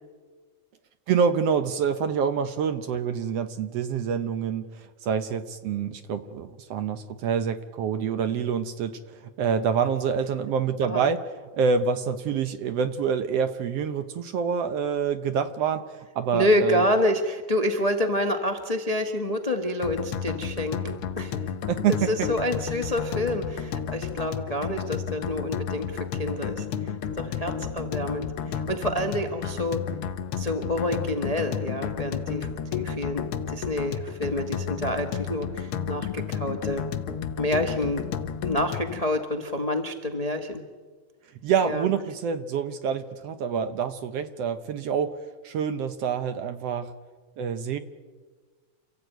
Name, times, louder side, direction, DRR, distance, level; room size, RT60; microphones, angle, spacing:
voice 1, 1.1-8.9 9.2-11.2 11.5-16.8 21.7-22.1 41.4-45.1 45.4-46.9 47.4-47.8, right 7 dB, 70° right, 9 dB, 1.6 m, -26 dB
voice 2, 16.3-21.4 21.9-29.8 30.3-36.8 37.4-38.0 38.4-40.6 41.6-41.9, left 1 dB, 90° left, 4 dB, 0.3 m, -28 dB
sound 1, 19.8-39.0, left 7 dB, 65° left, 1.4 m, -32 dB
29.0 x 14.5 x 9.2 m, 1.5 s
omnidirectional pair, 3.6 m